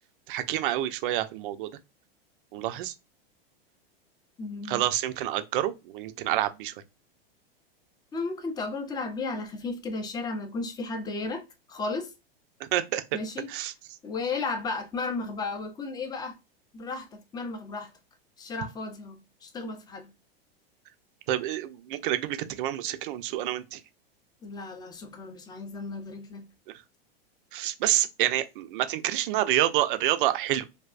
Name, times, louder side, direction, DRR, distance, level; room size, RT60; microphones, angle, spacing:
voice 1, 0.3-1.7 2.5-2.9 4.7-6.7 12.6-13.0 13.5-13.7 21.3-23.8 27.5-30.6, right 13 dB, 60° right, 0.5 m, -28 dB
voice 2, 4.4-4.9 8.1-12.1 13.1-13.7 14.0-16.4 16.7-17.9 18.4-20.1 24.4-26.5, left 3 dB, 15° left, 0.5 m, -34 dB
3.3 x 2.2 x 2.4 m
hypercardioid pair, 110°, 30 cm